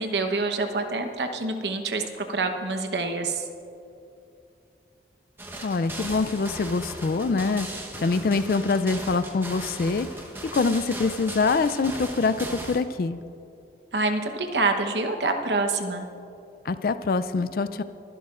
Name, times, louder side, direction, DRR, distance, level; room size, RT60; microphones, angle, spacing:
voice 1, 0.0-3.4 13.9-16.1, right 3 dB, 75° right, 6 dB, 1.0 m, -26 dB
sound 1, 5.4-12.8, right 1 dB, 15° right, 1.0 m, -38 dB
voice 2, 5.6-7.7 8.0-10.1 10.5-13.2 16.7-17.8, left 4 dB, 55° left, 12 dB, 0.4 m, -24 dB
24.0 x 12.0 x 2.5 m, 2.7 s
head